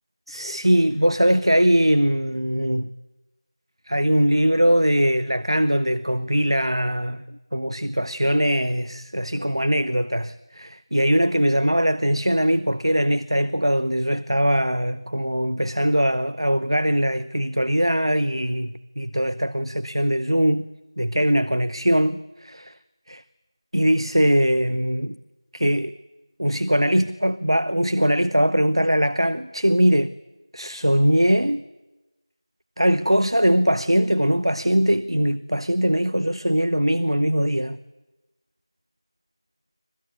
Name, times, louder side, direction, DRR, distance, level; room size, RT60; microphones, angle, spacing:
voice 1, 0.3-2.9 3.9-7.2 7.5-20.7 21.0-22.7 23.1-23.2 23.7-25.2 25.5-25.9 26.4-30.1 30.5-31.6 32.8-37.8, equal, 70° right, 0.9 m, -21 dB
25.5 x 17.0 x 9.7 m
figure-of-eight pair, 180°, 3 cm